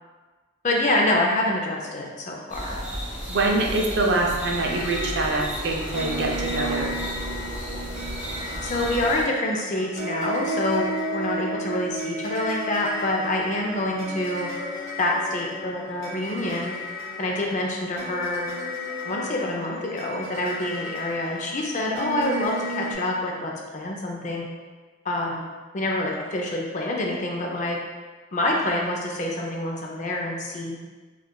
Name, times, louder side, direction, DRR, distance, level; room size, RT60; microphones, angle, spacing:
voice 1, 0.6-2.8 8.6-14.5 15.0-16.7 17.2-18.5 19.0-24.5 25.0-25.4 25.7-27.8 28.3-30.8, left 1 dB, 35° left, -1 dB, 0.4 m, -26 dB
sound 1, 2.5-9.2, equal, 10° right, 1.2 m, -33 dB
voice 2, 3.3-6.9, right 2 dB, 55° right, 0 dB, 0.4 m, -24 dB
sound 2, 4.5-22.9, equal, 15° left, 1.4 m, -34 dB
3.6 x 2.3 x 2.2 m, 1.3 s
head